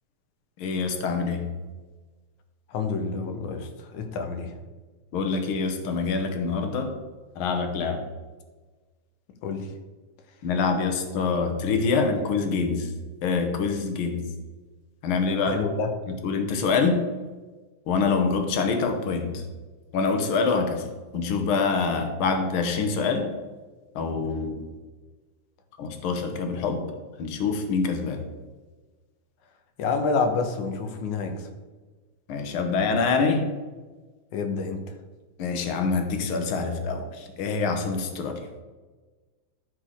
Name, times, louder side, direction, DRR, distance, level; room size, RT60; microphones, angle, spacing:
voice 1, 0.6-1.4 5.1-6.9 7.4-8.0 10.4-12.9 13.2-14.2 15.0-15.6 16.2-17.0 17.9-19.3 19.9-20.8 21.1-23.3 23.9-24.7 25.8-26.8 27.2-28.2 32.3-33.5 35.4-38.4, left 4 dB, 60° left, 6 dB, 1.5 m, -25 dB
voice 2, 2.7-4.5 9.4-9.7 15.4-15.9 29.8-31.5 34.3-34.8, left 4 dB, 85° left, 6 dB, 2.4 m, -28 dB
12.5 x 4.7 x 5.1 m, 1.3 s
omnidirectional pair, 3.3 m